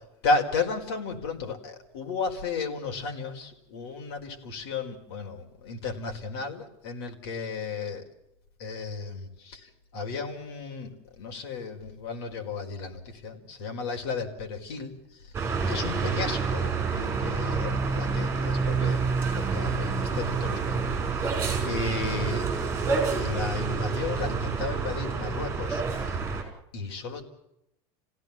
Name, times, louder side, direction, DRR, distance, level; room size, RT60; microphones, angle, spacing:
voice 1, 0.2-8.0 8.6-9.6 9.9-14.9 15.7-19.0 19.3-21.3 21.6-22.5 23.1-26.2 26.7-27.2, left 4 dB, 70° left, 3 dB, 4.8 m, -33 dB
sound 1, 15.3-26.4, right 4 dB, 15° right, 5.8 m, -28 dB
29.0 x 16.5 x 7.2 m, 0.81 s
supercardioid pair, 170°, 14 cm